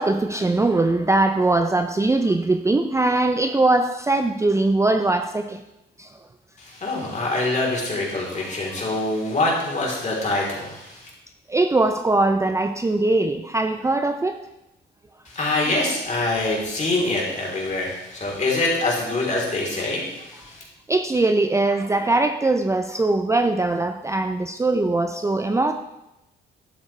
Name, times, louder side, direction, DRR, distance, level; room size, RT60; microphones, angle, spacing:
voice 1, 0.0-5.6 6.0-6.1 11.5-14.4 20.9-25.7, right 2 dB, 15° right, 6 dB, 0.5 m, -21 dB
voice 2, 6.6-11.1 15.3-20.6, left 2 dB, 35° left, -2 dB, 3.5 m, -25 dB
11.5 x 8.0 x 3.3 m, 0.91 s
cardioid pair, 90°, 20 cm